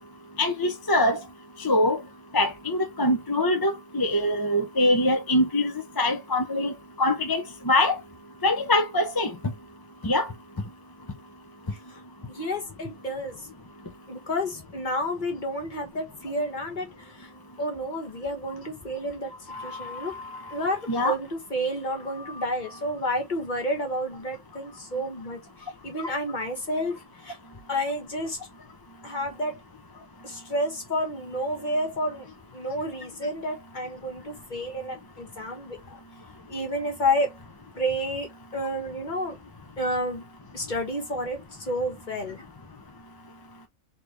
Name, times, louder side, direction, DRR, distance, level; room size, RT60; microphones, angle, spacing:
voice 1, 0.4-1.2 1.6-2.0 2.3-8.0 8.4-9.3 10.0-10.3 19.5-20.3 20.9-21.1, left 1 dB, 20° left, 0.6 m, -24 dB
voice 2, 12.3-13.5 14.1-17.3 17.6-20.1 20.5-27.4 27.7-28.4 29.0-29.6 30.2-32.3 32.5-36.0 36.5-37.3 37.7-39.4 39.8-40.2 40.5-42.5, equal, 40° left, 1.5 m, -30 dB
4.1 x 3.2 x 3.1 m
omnidirectional pair, 1.3 m